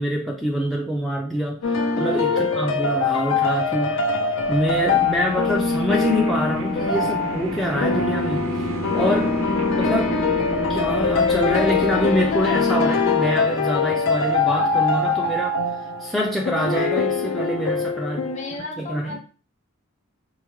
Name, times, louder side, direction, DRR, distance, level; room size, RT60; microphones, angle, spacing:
voice 1, 0.0-4.0 4.5-8.6 8.9-9.4 9.8-10.2 10.7-15.6 16.0-18.3 18.6-19.2, equal, ahead, -2 dB, 0.4 m, -25 dB
sound 1, 1.6-18.6, left 4 dB, 70° left, 0.4 m, -23 dB
sound 2, 4.4-14.3, equal, 75° right, 0.7 m, -31 dB
voice 2, 18.2-19.2, left 1 dB, 35° left, 1 dB, 0.8 m, -34 dB
4.6 x 2.1 x 3.0 m, 0.38 s
head